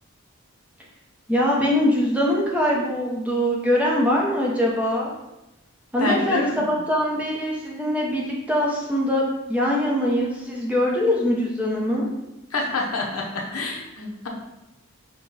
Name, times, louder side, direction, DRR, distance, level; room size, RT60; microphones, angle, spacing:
voice 1, 1.3-5.1 5.9-12.1, left 1 dB, 5° right, -3 dB, 0.7 m, -22 dB
voice 2, 6.0-6.8 12.5-14.3, left 2 dB, 85° left, -1 dB, 0.9 m, -27 dB
5.7 x 2.2 x 4.0 m, 0.93 s
head